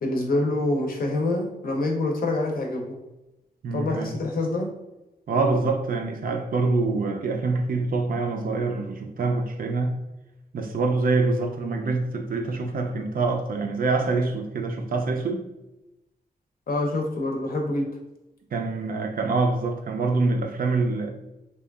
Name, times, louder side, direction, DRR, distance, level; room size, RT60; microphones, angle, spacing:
voice 1, 0.0-2.9 3.7-4.7 16.7-17.9, left 2 dB, 65° left, 0.6 m, -26 dB
voice 2, 3.6-4.2 5.3-10.0 10.5-15.5 18.5-21.1, right 3 dB, 60° right, 0.4 m, -25 dB
2.7 x 2.3 x 2.3 m
wide cardioid pair, 95°, 16 cm